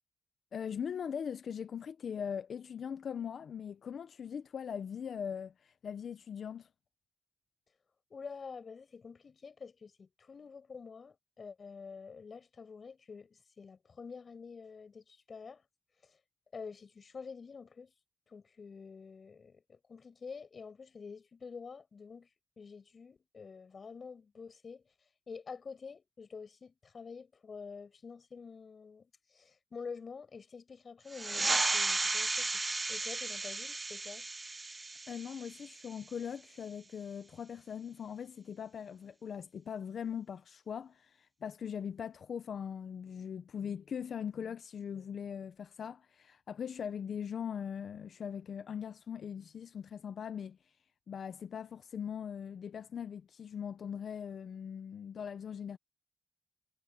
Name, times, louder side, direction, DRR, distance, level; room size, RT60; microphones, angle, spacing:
voice 1, 0.5-6.7 35.1-50.6 51.1-55.8, left 7 dB, 80° left, 0.6 m, -40 dB
voice 2, 8.1-15.6 16.0-16.2 16.5-17.9 18.3-22.3 22.6-24.8 25.3-34.3, left 5 dB, 60° left, 7.5 m, -48 dB
sound 1, 31.1-36.2, right 3 dB, 30° right, 0.6 m, -34 dB
cardioid pair, 75°, 0 cm